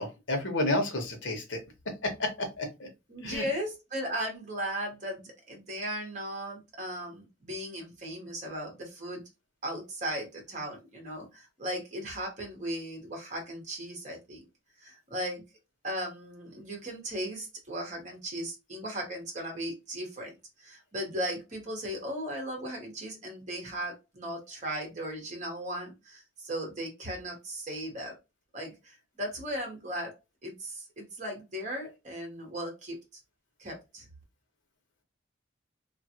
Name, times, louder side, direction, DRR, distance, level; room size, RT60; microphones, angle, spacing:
voice 1, 0.0-1.6 2.0-2.9 3.2-3.4, left 1 dB, 75° left, 4 dB, 0.9 m, -31 dB
voice 2, 3.1-9.2 9.6-14.4 14.8-15.4 15.8-20.3 20.6-28.2 28.5-30.1 30.4-33.0 33.6-34.0, equal, 40° right, 1 dB, 1.1 m, -37 dB
2.5 x 2.4 x 2.8 m, 0.24 s
head